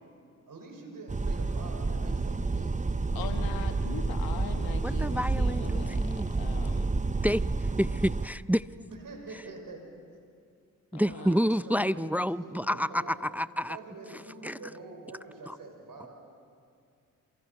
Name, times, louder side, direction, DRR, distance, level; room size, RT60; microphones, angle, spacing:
voice 1, 0.5-3.9 8.7-9.9 10.9-13.2 13.7-16.1, right 3 dB, 65° right, 3 dB, 5.7 m, -46 dB
sound 1, 1.1-8.3, right 3 dB, 20° right, 0.8 m, -29 dB
voice 2, 3.1-6.0 6.3-6.9 10.9-11.4 11.7-12.1, left 8 dB, 90° left, 6 dB, 1.5 m, -41 dB
voice 3, 4.8-6.4 7.2-8.7 10.9-13.8 14.4-14.6, equal, 5° right, 16 dB, 0.5 m, -29 dB
28.0 x 22.5 x 5.8 m, 2.3 s
supercardioid pair, 45°, 36 cm